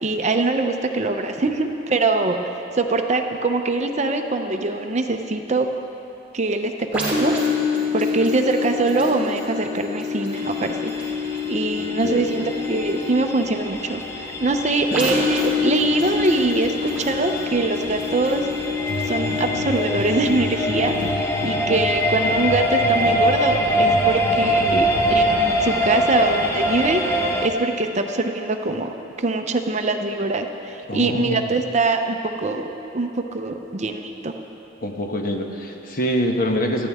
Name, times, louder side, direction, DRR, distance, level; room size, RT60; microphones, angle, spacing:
voice 1, 0.0-2.4 2.7-5.7 6.3-7.7 7.9-10.9 11.5-18.5 19.0-32.7 32.9-34.3, right 3 dB, 35° right, 5 dB, 0.7 m, -23 dB
sound 1, 6.9-24.5 25.0-25.1, left 5 dB, 5° right, 3.5 m, -27 dB
sound 2, 10.4-27.5, equal, 15° left, 0.8 m, -24 dB
voice 2, 11.7-12.4 30.9-31.5 34.8-36.9, equal, 45° left, 3 dB, 1.1 m, -25 dB
sound 3, 18.9-27.1, right 1 dB, 70° right, 1.3 m, -32 dB
20.0 x 14.0 x 3.6 m, 3.0 s
head